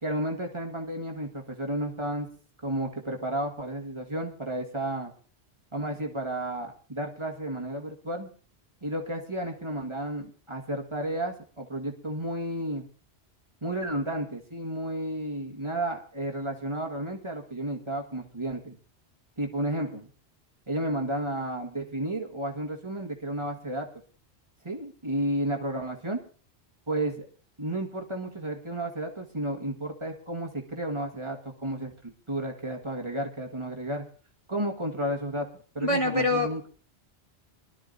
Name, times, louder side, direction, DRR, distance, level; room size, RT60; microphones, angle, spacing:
voice 1, 0.0-2.3 2.6-5.1 5.7-8.3 8.8-12.8 13.6-18.8 19.4-20.1 20.7-23.9 24.6-26.2 26.9-27.2 27.6-34.1 34.5-35.5 35.7-36.7, right 1 dB, 25° right, 1 dB, 1.5 m, -32 dB
voice 2, 35.8-36.7, left 2 dB, 30° left, 1 dB, 1.2 m, -25 dB
24.0 x 12.5 x 2.6 m, 0.41 s
omnidirectional pair, 1.1 m